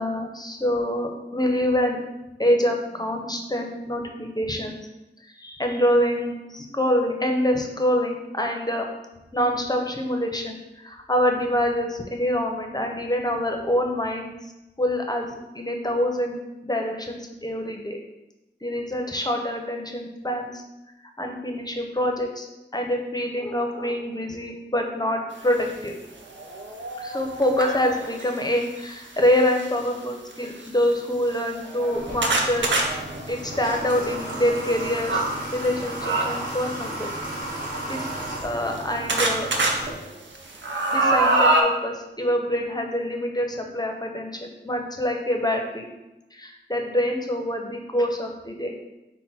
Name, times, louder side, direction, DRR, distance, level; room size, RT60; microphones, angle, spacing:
voice 1, 0.0-2.0 2.4-4.8 5.4-8.9 9.3-14.3 14.8-18.0 18.6-20.6 21.2-22.5 22.7-25.9 27.0-32.7 33.3-35.3 35.5-37.1 37.6-38.1 38.4-39.5 40.9-45.9 46.3-48.7, left 1 dB, 20° left, 3 dB, 0.6 m, -25 dB
sound 1, 25.7-25.8 26.3-28.3 29.3-29.7 30.3-30.4 30.7-30.8 31.4-35.3 36.0-36.6 37.6-38.8 39.1-39.7 40.1-41.6, right 2 dB, 90° right, 0.6 m, -25 dB
Water / Water tap faucet, 31.9-39.9, right 1 dB, 45° right, 1.4 m, -34 dB
5.9 x 2.1 x 4.1 m, 0.98 s
wide cardioid pair, 60°, 19 cm